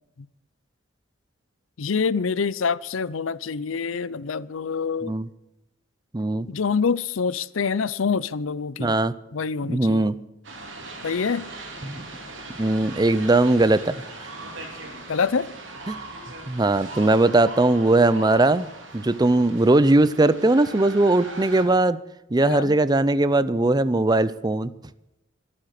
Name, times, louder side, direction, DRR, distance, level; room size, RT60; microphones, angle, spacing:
voice 1, 1.8-5.1 6.5-9.0 9.3-10.1 11.0-11.4 15.1-15.5 22.4-22.8, left 5 dB, 85° left, 0.6 m, -26 dB
voice 2, 6.1-6.5 8.8-9.1 9.7-10.2 11.8-12.1 12.6-14.0 15.9-16.0 16.5-18.7 18.9-22.0 22.3-24.7, right 2 dB, 20° right, 0.5 m, -19 dB
sound 1, 10.4-21.6, right 2 dB, 65° right, 3.6 m, -39 dB
22.5 x 8.8 x 6.6 m
head